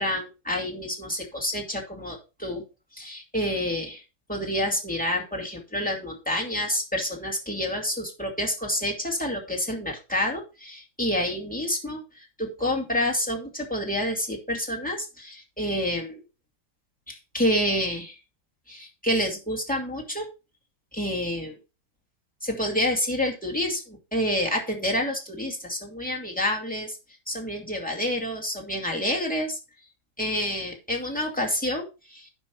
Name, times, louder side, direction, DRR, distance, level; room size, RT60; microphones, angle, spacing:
voice 1, 0.0-2.6 2.9-4.0 4.3-16.2 17.1-18.2 18.7-20.3 20.9-21.6 22.4-27.0 27.3-29.6 30.2-32.3, left 1 dB, 5° left, 1 dB, 2.2 m, -28 dB
11.0 x 5.1 x 4.7 m, 0.29 s
omnidirectional pair, 2.1 m